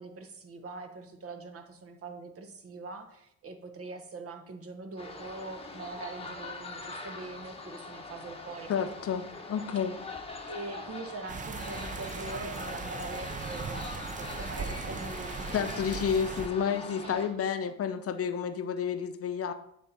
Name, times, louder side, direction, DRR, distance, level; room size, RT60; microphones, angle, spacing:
voice 1, 0.0-8.9 10.5-13.9 14.2-15.7 17.0-17.7, right 3 dB, 50° right, 7 dB, 1.1 m, -43 dB
sound 1, 5.0-17.3, left 3 dB, 20° left, 1.0 m, -42 dB
voice 2, 8.7-10.0 15.5-19.5, left 7 dB, 50° left, 9 dB, 0.6 m, -30 dB
sound 2, 11.3-16.5, right 5 dB, 25° right, 0.5 m, -39 dB
9.2 x 3.6 x 4.2 m, 0.74 s
cardioid pair, 90°, 30 cm